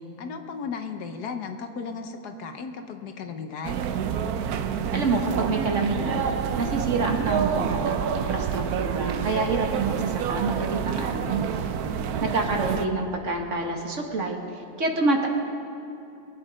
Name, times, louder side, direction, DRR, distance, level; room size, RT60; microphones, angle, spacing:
voice 1, 0.2-3.8, left 5 dB, 65° left, 6 dB, 1.3 m, -35 dB
sound 1, 3.6-12.9, right 7 dB, 65° right, 1.1 m, -28 dB
voice 2, 4.9-6.3 6.6-11.5 12.2-15.3, right 3 dB, 45° right, 2 dB, 1.4 m, -27 dB
22.5 x 8.9 x 5.0 m, 2.9 s
omnidirectional pair, 1.9 m